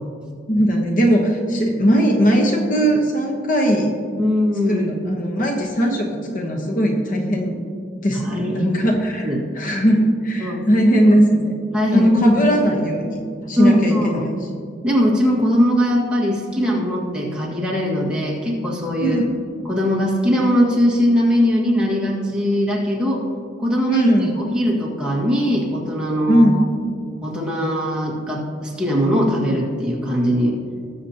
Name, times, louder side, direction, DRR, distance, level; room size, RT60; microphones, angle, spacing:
voice 1, 0.5-3.9 4.7-6.1 6.3-7.6 8.0-11.5 11.9-13.2 13.5-14.3 19.0-19.2 23.9-24.4 26.3-26.6, equal, 45° left, 1 dB, 1.1 m, -18 dB
voice 2, 4.2-4.8 8.2-8.7 9.2-9.4 10.4-10.6 11.7-12.2 12.7-12.8 13.6-14.2 14.8-19.2 19.7-23.2 23.6-24.1 24.4-26.6 27.2-30.6, equal, 5° right, -4 dB, 1.8 m, -20 dB
19.5 x 7.0 x 2.9 m, 2.2 s
head